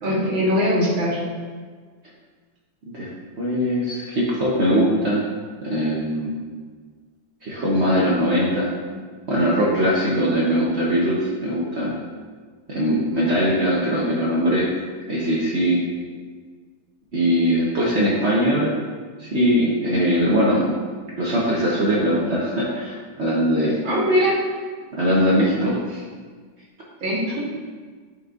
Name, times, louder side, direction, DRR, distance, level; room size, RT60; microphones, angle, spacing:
voice 1, 0.0-1.2 23.8-24.4 27.0-27.4, equal, 85° right, -5 dB, 2.1 m, -21 dB
voice 2, 3.4-5.3 5.6-6.5 7.4-8.7 9.3-11.9 12.7-14.7 15.1-15.8 17.1-18.7 19.2-20.7 21.2-23.8 24.9-26.0, equal, 50° right, -5 dB, 0.8 m, -21 dB
8.0 x 4.8 x 2.4 m, 1.6 s
omnidirectional pair, 2.1 m